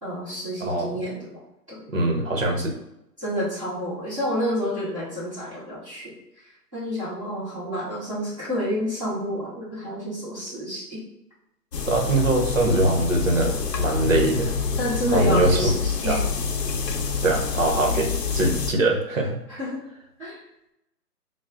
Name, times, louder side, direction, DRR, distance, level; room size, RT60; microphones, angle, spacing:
voice 1, 0.0-1.3 1.7-1.9 3.2-6.1 6.4-11.0 14.8-16.2 19.5-19.8 20.2-20.4, equal, 20° right, -14 dB, 1.0 m, -29 dB
voice 2, 0.6-1.0 1.9-2.8 11.9-14.5 15.1-15.7 16.1-16.2 17.2-19.4, right 2 dB, 55° right, 1 dB, 0.8 m, -22 dB
sound 1, 11.7-18.7, left 5 dB, 90° left, 0.7 m, -27 dB
5.9 x 2.1 x 2.4 m, 0.87 s
hypercardioid pair, 180°, 48 cm